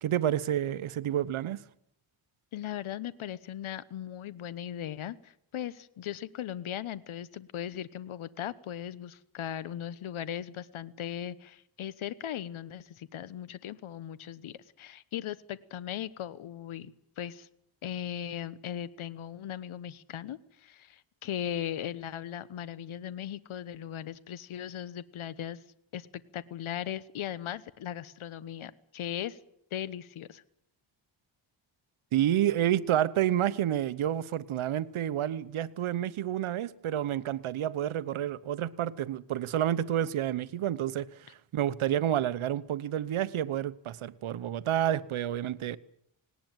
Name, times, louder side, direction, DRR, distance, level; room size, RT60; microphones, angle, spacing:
voice 1, 0.0-1.6 32.1-45.8, right 11 dB, 75° right, 1.1 m, -29 dB
voice 2, 2.5-17.5 17.8-25.6 25.9-26.1 26.3-29.4 29.7-30.4, left 10 dB, 75° left, 1.1 m, -38 dB
19.0 x 18.5 x 9.1 m
cardioid pair, 100°, 49 cm